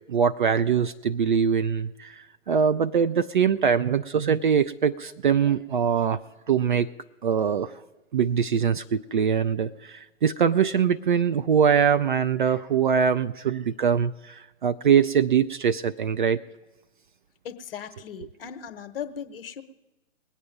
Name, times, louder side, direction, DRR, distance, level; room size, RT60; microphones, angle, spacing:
voice 1, 0.1-6.2 6.5-6.9 7.2-7.7 8.1-16.4, right 7 dB, 40° right, 11 dB, 0.4 m, -23 dB
voice 2, 17.4-19.6, left 8 dB, 45° left, 9 dB, 1.0 m, -37 dB
20.5 x 8.6 x 5.2 m, 1.1 s
figure-of-eight pair, 125°, 39 cm